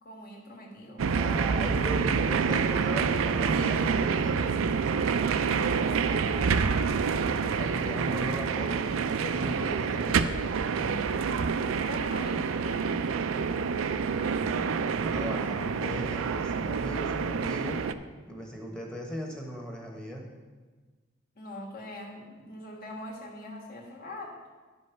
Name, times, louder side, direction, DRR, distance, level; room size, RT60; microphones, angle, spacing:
voice 1, 0.0-1.1 5.9-7.0 11.8-13.7 21.4-24.3, left 1 dB, 45° left, -1 dB, 1.6 m, -42 dB
sound 1, 1.0-17.9, right 5 dB, 85° right, 0.4 m, -27 dB
voice 2, 1.1-4.6 7.4-10.7 14.1-17.8 18.2-20.3, equal, 5° left, 0 dB, 1.2 m, -38 dB
sound 2, 3.3-3.5 4.1-4.5 4.8-5.1 5.7-5.9 6.4-6.7 7.2-7.6 8.0-8.2 8.7-8.9 9.3-9.8 10.1-10.5 10.9-11.2 11.6-11.7, right 2 dB, 40° right, 0.6 m, -44 dB
10.5 x 5.3 x 5.7 m, 1.4 s
head